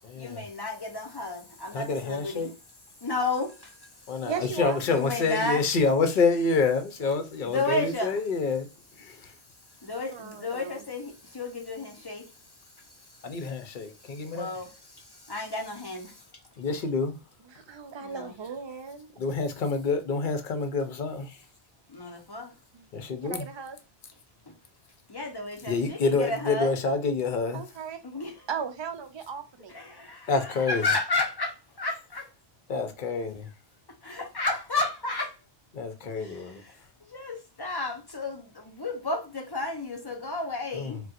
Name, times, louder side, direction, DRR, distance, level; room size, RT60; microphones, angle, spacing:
voice 1, 0.2-2.5 3.0-4.2 4.9-5.7 7.4-8.2 9.8-16.3 18.0-18.4 21.9-22.5 24.5-24.6 25.1-26.7 28.0-28.5 29.7-32.3 34.0-35.4 36.1-41.0, left 2 dB, 25° left, 0.6 m, -33 dB
voice 2, 1.7-2.5 4.1-8.7 9.0-9.3 13.2-14.5 16.6-17.2 19.2-21.4 22.9-23.5 25.7-27.6 30.3-30.8 32.7-33.5 35.7-36.6 40.7-41.0, left 4 dB, 55° left, 0.8 m, -27 dB
voice 3, 4.2-4.8 7.0-7.2 10.1-10.8 17.5-19.1 22.7-22.9 23.2-23.8 27.5-28.2 28.5-29.7, right 7 dB, 50° right, 0.3 m, -37 dB
4.1 x 2.2 x 2.4 m
omnidirectional pair, 1.0 m